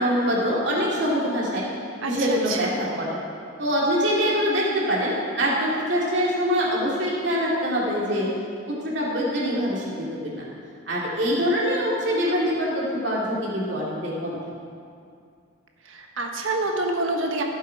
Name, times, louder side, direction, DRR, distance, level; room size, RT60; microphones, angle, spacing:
voice 1, 0.0-1.7 2.0-3.2 3.6-8.3 8.7-10.4 10.9-14.4, equal, 60° right, -5 dB, 2.8 m, -24 dB
voice 2, 2.0-2.7 15.9-17.4, right 2 dB, 75° right, 2 dB, 1.3 m, -27 dB
16.0 x 7.6 x 4.7 m, 2.4 s
head